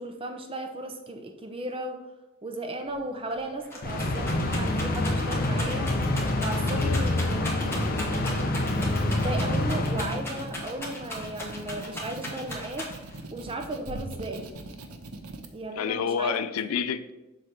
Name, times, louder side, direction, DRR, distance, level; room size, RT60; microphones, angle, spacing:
voice 1, 0.0-2.0 2.4-5.9 6.4-12.9 13.3-14.5 15.5-16.4, right 1 dB, 25° right, 5 dB, 0.5 m, -36 dB
Rattle, 2.9-3.0 3.3-13.2 13.9-14.5, left 1 dB, 10° left, 1.4 m, -38 dB
sound 1, 3.8-10.6, left 1 dB, 45° left, 0.7 m, -27 dB
sound 2, 8.4-15.5, right 2 dB, 90° right, 0.7 m, -43 dB
voice 2, 15.8-17.1, left 7 dB, 85° left, 10 dB, 0.4 m, -29 dB
7.5 x 3.3 x 5.7 m, 1.0 s
head